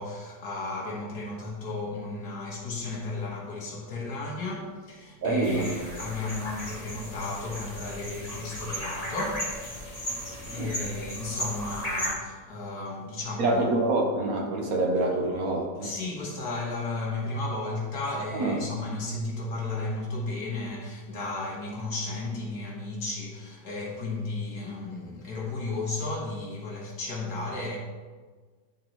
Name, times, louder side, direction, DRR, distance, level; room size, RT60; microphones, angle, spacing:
voice 1, 0.0-10.2 10.5-13.7 15.8-27.8, left 2 dB, 65° left, 1.9 m, -34 dB
voice 2, 5.2-5.7 10.5-10.7 13.4-15.9 18.3-18.6, right 2 dB, 65° right, 1.1 m, -26 dB
sound 1, 5.4-12.1, equal, 25° left, 1.3 m, -35 dB
11.0 x 4.0 x 2.9 m
omnidirectional pair, 1.9 m